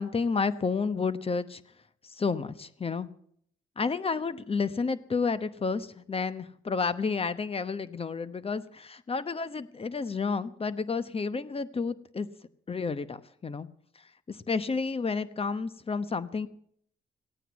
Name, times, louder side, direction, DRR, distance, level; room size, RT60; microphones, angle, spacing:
voice 1, 0.0-1.6 2.0-3.1 3.8-12.3 12.7-13.7 14.3-16.5, left 4 dB, 30° left, 14 dB, 1.0 m, -31 dB
16.0 x 9.2 x 8.2 m, 0.65 s
cardioid pair, 90°, 20 cm